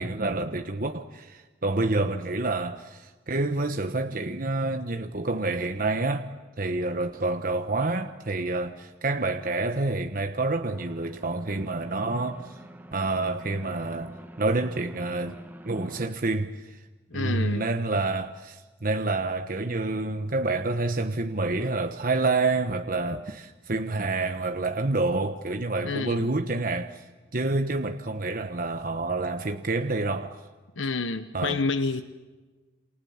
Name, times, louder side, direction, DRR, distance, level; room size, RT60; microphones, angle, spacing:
voice 1, 0.0-6.3 6.6-12.6 12.9-15.4 15.6-16.8 17.1-27.0 27.3-30.4 31.3-31.6, right 2 dB, 45° right, 1.2 m, -28 dB
sound 1, 10.7-16.1, right 1 dB, 10° right, 1.5 m, -46 dB
voice 2, 17.1-17.6 25.8-26.3 30.8-32.0, left 3 dB, 85° left, 1.1 m, -28 dB
29.0 x 28.0 x 7.3 m
head